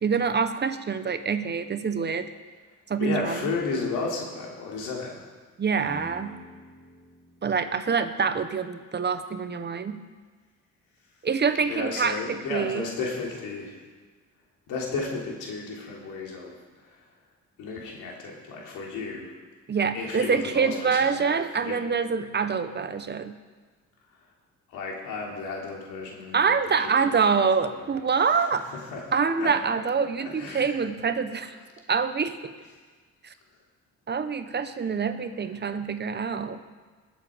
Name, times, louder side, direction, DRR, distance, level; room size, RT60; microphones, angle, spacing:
voice 1, 0.0-2.3 2.9-3.5 5.6-6.4 7.4-10.0 11.2-12.9 19.7-23.4 26.3-28.6 29.1-31.5 31.9-32.5 34.1-36.6, right 5 dB, 35° right, 10 dB, 0.9 m, -26 dB
voice 2, 3.0-5.2 11.7-13.7 14.7-16.6 17.6-19.3 19.9-21.8 24.7-26.6 27.0-27.3 27.5-27.8 28.3-28.4 28.7-29.0 29.4-29.8 30.4-30.8 31.3-31.4, left 4 dB, 90° left, -1 dB, 3.1 m, -33 dB
sound 1, 5.8-8.7, equal, 10° right, 4.2 m, -47 dB
21.0 x 7.4 x 5.1 m, 1.4 s
cardioid pair, 90°, 30 cm